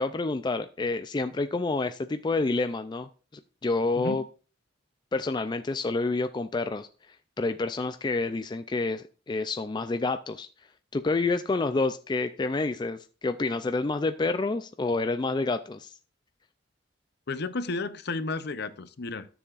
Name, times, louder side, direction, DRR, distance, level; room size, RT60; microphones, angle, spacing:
voice 1, 0.0-3.1 3.6-4.2 5.1-6.9 7.4-10.5 10.9-15.9, left 3 dB, 25° left, 9 dB, 0.3 m, -28 dB
voice 2, 17.3-19.3, left 3 dB, 60° left, 13 dB, 0.7 m, -32 dB
13.0 x 7.0 x 2.5 m, 0.36 s
head